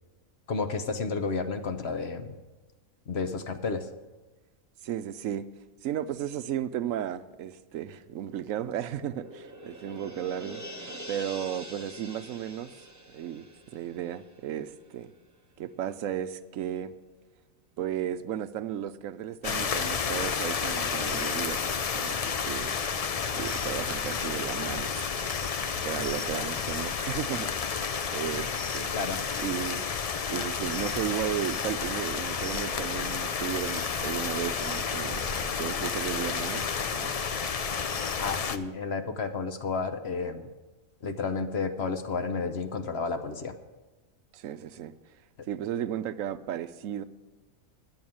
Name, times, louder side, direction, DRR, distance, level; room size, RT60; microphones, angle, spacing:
voice 1, 0.5-2.4 3.1-3.9 28.9-29.2 38.2-40.5 41.0-43.6, left 4 dB, 55° left, 1.0 m, -31 dB
voice 2, 4.8-5.5 5.8-10.6 11.1-12.7 13.1-13.5 13.7-15.1 15.6-16.9 17.8-21.7 21.9-22.7 23.3-25.0 25.8-27.5 28.1-28.9 29.4-29.9 30.3-37.1 44.3-44.9 45.5-47.0, right 10 dB, 75° right, 1.0 m, -34 dB
sound 1, 8.0-15.0 15.4-15.5, right 1 dB, 15° right, 0.7 m, -45 dB
sound 2, 19.4-38.6, left 6 dB, 75° left, 0.3 m, -31 dB
11.0 x 7.8 x 8.8 m
omnidirectional pair, 1.4 m